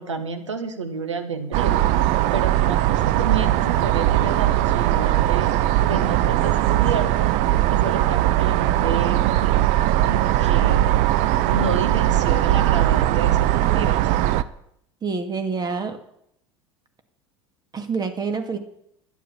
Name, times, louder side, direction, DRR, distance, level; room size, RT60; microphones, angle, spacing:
voice 1, 0.0-1.8 2.3-5.5 5.8-7.3 7.7-9.3 10.1-11.1 11.5-14.0, right 4 dB, 85° right, 8 dB, 1.5 m, -30 dB
sound 1, 1.5-14.4, right 13 dB, 55° right, 0.7 m, -19 dB
voice 2, 15.0-16.0 17.7-18.6, right 5 dB, 25° right, 7 dB, 2.0 m, -27 dB
11.5 x 9.3 x 6.9 m, 0.72 s
figure-of-eight pair, 75°, 15 cm